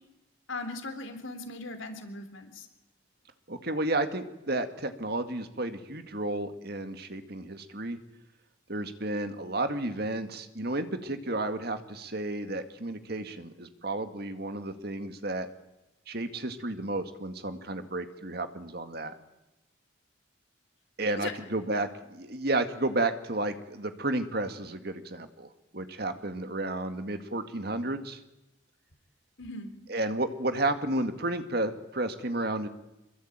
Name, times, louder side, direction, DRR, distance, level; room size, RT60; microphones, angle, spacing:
voice 1, 0.5-2.7 21.2-21.3 29.4-29.7, left 2 dB, 75° left, 8 dB, 3.6 m, -39 dB
voice 2, 3.5-8.0 8.7-15.5 16.1-19.2 21.0-28.2 29.9-32.7, right 2 dB, 50° right, 8 dB, 2.1 m, -32 dB
26.0 x 22.5 x 9.0 m, 0.95 s
head